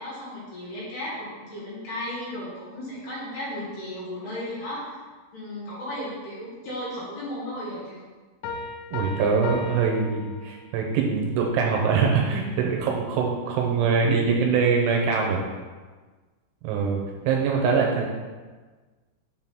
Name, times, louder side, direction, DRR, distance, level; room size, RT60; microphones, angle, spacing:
voice 1, 0.0-5.0 5.3-8.0, left 1 dB, 60° left, -8 dB, 3.7 m, -35 dB
Piano, 8.4-10.9, left 4 dB, 80° left, 3.3 m, -36 dB
voice 2, 8.9-15.4 16.6-17.0 17.3-18.0, right 5 dB, 80° right, 0 dB, 3.0 m, -23 dB
7.6 x 3.8 x 5.9 m, 1.4 s
omnidirectional pair, 5.9 m